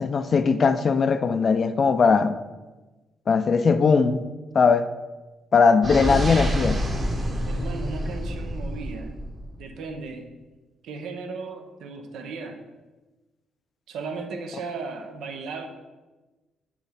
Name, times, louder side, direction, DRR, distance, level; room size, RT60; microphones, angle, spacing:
voice 1, 0.0-2.4 3.3-4.2 4.5-4.9 5.5-6.8, left 5 dB, 45° left, 10 dB, 0.4 m, -19 dB
sound 1, 5.8-9.7, equal, 35° right, 1.2 m, -27 dB
voice 2, 7.5-9.2 9.6-10.3 10.8-12.6 13.9-15.7, right 4 dB, 80° right, 5 dB, 0.8 m, -36 dB
7.2 x 3.2 x 5.7 m, 1.2 s
cardioid pair, 90°, 0 cm